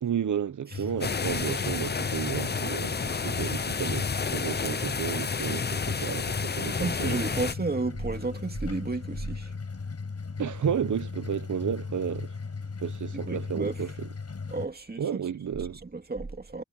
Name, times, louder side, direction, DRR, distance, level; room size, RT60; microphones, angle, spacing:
voice 1, 0.0-7.2 10.4-12.3 12.8-14.1 15.0-15.8, right 8 dB, 70° right, 1.0 m, -32 dB
sound 1, 0.7-14.7, left 4 dB, 55° left, 5.8 m, -37 dB
sound 2, 1.0-7.5, left 5 dB, 35° left, 0.6 m, -31 dB
voice 2, 6.8-9.5 13.3-13.8 14.5-15.2 15.7-16.6, right 3 dB, 30° right, 2.2 m, -32 dB
wide cardioid pair, 105°, 31 cm